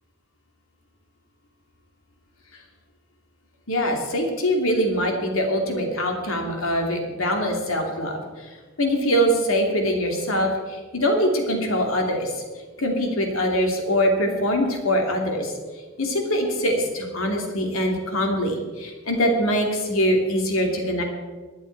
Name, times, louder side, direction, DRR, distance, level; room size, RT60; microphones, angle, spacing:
voice 1, 3.7-8.2 8.8-12.4 12.8-15.5 16.0-21.0, equal, 70° left, 2 dB, 2.6 m, -23 dB
18.0 x 11.0 x 4.6 m, 1.4 s
head